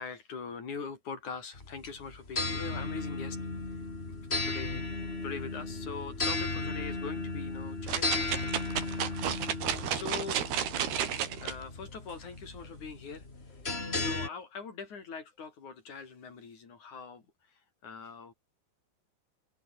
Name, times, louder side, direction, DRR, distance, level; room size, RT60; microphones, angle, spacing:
voice 1, 0.0-3.4 4.3-4.8 5.2-8.3 9.9-10.5 11.1-13.6 14.0-18.3, left 5 dB, 40° left, 5.4 m, -42 dB
sound 1, 1.5-14.3, left 3 dB, 20° left, 2.1 m, -35 dB
sound 2, 7.9-11.5 12.1-12.2, right 9 dB, 60° right, 4.2 m, -32 dB
omnidirectional pair, 5.7 m